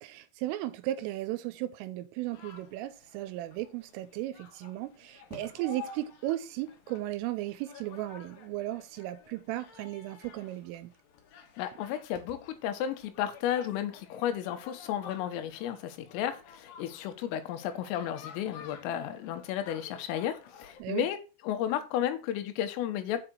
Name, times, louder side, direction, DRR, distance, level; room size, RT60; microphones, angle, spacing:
voice 1, 0.0-10.9 20.8-21.1, right 15 dB, 85° right, 3.3 m, -36 dB
sound 1, 2.3-20.8, left 5 dB, 65° left, 2.2 m, -51 dB
voice 2, 11.6-23.2, left 10 dB, 85° left, 3.6 m, -33 dB
7.6 x 5.0 x 6.1 m
omnidirectional pair, 5.9 m